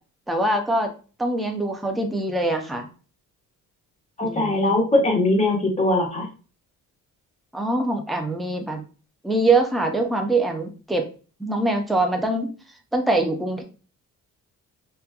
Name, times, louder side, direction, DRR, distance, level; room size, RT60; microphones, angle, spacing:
voice 1, 0.3-0.9 1.2-2.9 4.2-4.8 7.5-8.8 9.2-11.1 11.4-12.5 12.9-13.6, right 2 dB, ahead, 3 dB, 0.3 m, -23 dB
voice 2, 4.2-6.3, left 2 dB, 20° left, -1 dB, 0.8 m, -21 dB
2.8 x 2.2 x 2.2 m, 0.36 s
cardioid pair, 120°, 33 cm